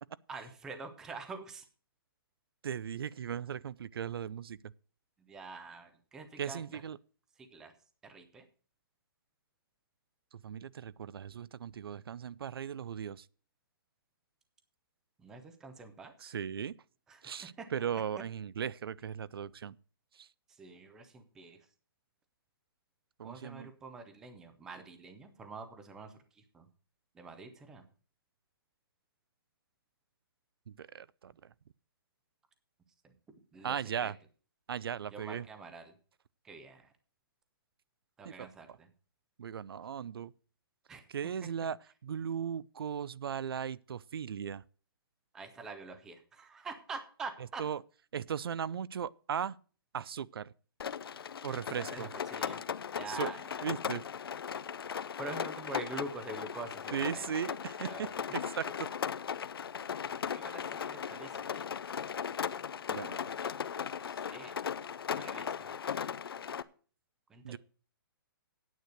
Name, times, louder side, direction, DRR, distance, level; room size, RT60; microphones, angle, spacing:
voice 1, 0.3-1.6 5.3-6.8 7.4-7.7 8.0-8.4 15.2-16.1 17.1-17.7 20.6-21.6 23.2-26.2 26.5-26.7 27.2-27.8 33.5-33.8 34.0-34.1 35.1-35.9 36.4-36.9 38.2-38.9 40.9-41.0 45.3-47.6 51.7-52.6 52.9-53.6 55.2-58.2 60.3-61.6 63.3-63.5 63.9-64.6 65.1-65.7 67.3-67.6, right 3 dB, 5° right, 0.5 m, -46 dB
voice 2, 2.6-4.6 6.4-7.0 10.4-13.3 16.2-16.8 17.2-19.8 20.2-20.3 23.2-23.7 30.7-31.3 33.6-34.2 34.7-35.5 38.2-38.8 39.4-40.3 41.1-41.8 42.0-44.6 47.6-47.8 48.1-49.6 49.9-50.5 51.4-52.1 53.1-53.3 53.6-54.0 56.9-58.9 62.9-63.2 67.4-67.6, right 8 dB, 75° right, 0.4 m, -37 dB
Rain, 50.8-66.6, left 7 dB, 75° left, 0.6 m, -38 dB
9.4 x 8.3 x 6.4 m
hypercardioid pair, 180°, 12 cm